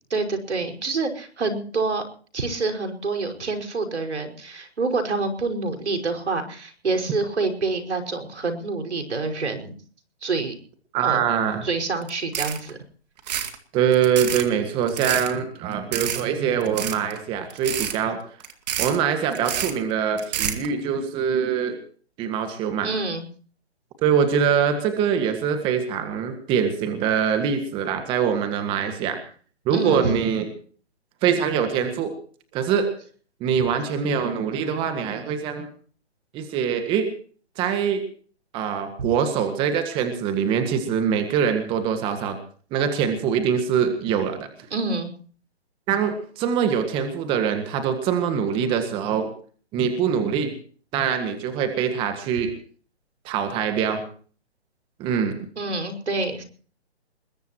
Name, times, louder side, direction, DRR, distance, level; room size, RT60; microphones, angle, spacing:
voice 1, 0.1-2.0 2.3-9.7 10.2-10.5 11.0-11.2 11.6-12.8 22.8-23.3 29.7-30.0 39.0-39.1 44.7-45.1 55.6-56.4, right 3 dB, 80° right, 4 dB, 5.5 m, -27 dB
voice 2, 10.9-11.7 13.7-18.2 18.8-21.8 22.2-22.9 24.0-29.2 29.7-30.5 31.2-32.1 32.5-32.9 33.4-35.7 36.3-37.1 37.6-38.0 38.5-42.4 42.7-44.5 45.9-49.3 49.7-50.5 50.9-52.5 53.3-54.0 55.0-55.5, right 7 dB, 15° right, 8 dB, 1.7 m, -23 dB
sound 1, 12.0-12.1 12.3-12.7 13.2-13.6 13.9-14.4 14.9-15.3 15.9-16.2 16.6-17.2 17.5-18.0 18.4-19.0 19.3-19.7 20.2-20.7, right 9 dB, 40° right, 2.3 m, -28 dB
22.0 x 21.5 x 3.0 m, 0.43 s
hypercardioid pair, 155°, 34 cm